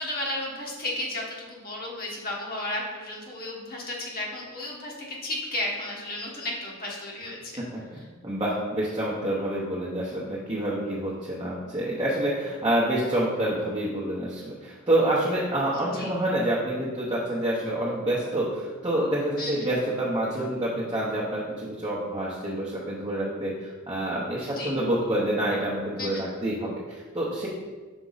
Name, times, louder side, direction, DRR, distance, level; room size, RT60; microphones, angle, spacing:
voice 1, 0.0-7.6 15.7-16.1 19.4-19.7 24.4-24.7 26.0-26.3, left 1 dB, 45° left, -3 dB, 1.4 m, -33 dB
voice 2, 8.2-27.5, right 1 dB, 20° right, -6 dB, 0.9 m, -27 dB
6.1 x 4.4 x 4.0 m, 1.4 s
head